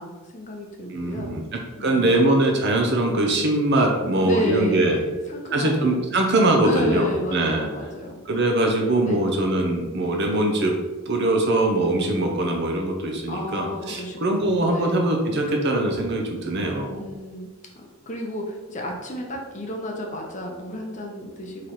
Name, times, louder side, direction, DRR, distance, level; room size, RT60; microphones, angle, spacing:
voice 1, 0.0-1.4 1.8-2.2 4.2-6.0 6.6-8.2 9.0-9.2 13.3-15.0 16.8-21.7, equal, 35° left, 0 dB, 0.7 m, -32 dB
voice 2, 0.9-1.4 1.8-5.0 5.5-7.7 8.3-10.7 11.1-17.0, right 1 dB, 50° right, 1 dB, 0.6 m, -22 dB
3.9 x 3.1 x 4.3 m, 1.3 s
head